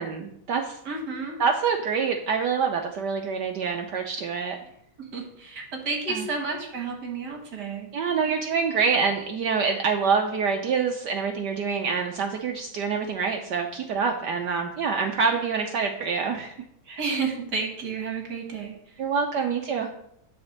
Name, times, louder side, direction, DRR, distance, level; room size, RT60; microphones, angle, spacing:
voice 1, 0.0-0.8 1.4-4.6 6.1-6.3 7.9-16.6 16.9-17.0 19.0-19.9, right 5 dB, 65° right, 4 dB, 1.1 m, -26 dB
voice 2, 0.9-1.4 5.1-7.9 17.0-18.8, right 4 dB, 50° right, 1 dB, 2.0 m, -31 dB
9.8 x 4.3 x 6.5 m, 0.75 s
omnidirectional pair, 2.4 m